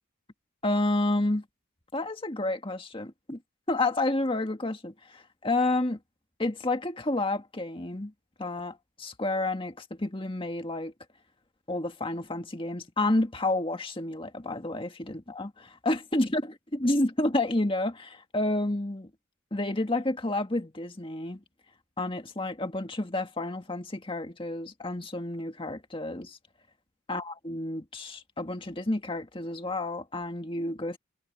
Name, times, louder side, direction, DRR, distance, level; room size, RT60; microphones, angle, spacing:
voice 1, 0.6-1.4 1.9-3.4 3.7-6.0 6.4-8.1 8.4-10.9 11.7-16.4 16.7-19.1 19.5-21.4 22.0-26.4 27.1-31.0, left 2 dB, 25° left, 1.9 m, -30 dB
head